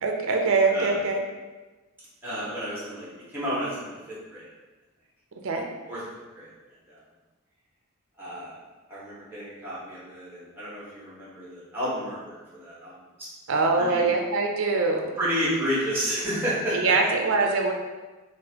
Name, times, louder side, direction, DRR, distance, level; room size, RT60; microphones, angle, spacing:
voice 1, 0.0-1.2 5.4-5.7 13.5-15.1 16.7-17.7, right 3 dB, 65° right, 2 dB, 0.5 m, -23 dB
voice 2, 2.2-3.9 4.3-4.4 5.9-6.0 6.3-6.5 6.9-7.0 8.2-8.5 8.9-12.9 13.7-14.1 15.2-16.8, equal, 10° right, -8 dB, 1.2 m, -31 dB
4.0 x 2.5 x 2.8 m, 1.2 s
head